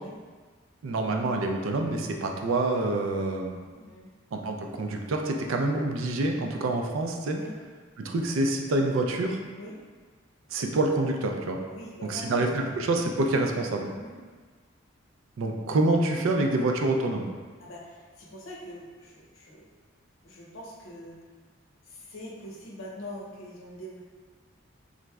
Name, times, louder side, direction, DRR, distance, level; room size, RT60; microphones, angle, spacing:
voice 1, 0.8-3.6 4.3-7.4 8.0-9.4 10.5-11.6 12.1-13.9 15.4-17.3, right 2 dB, 80° right, 3 dB, 0.4 m, -27 dB
voice 2, 3.7-4.1 7.3-7.6 9.5-9.8 11.6-12.7 13.9-14.2 17.6-19.7 20.2-21.2 21.8-24.0, left 1 dB, 85° left, -3 dB, 0.7 m, -43 dB
3.7 x 3.1 x 2.3 m, 1.5 s
head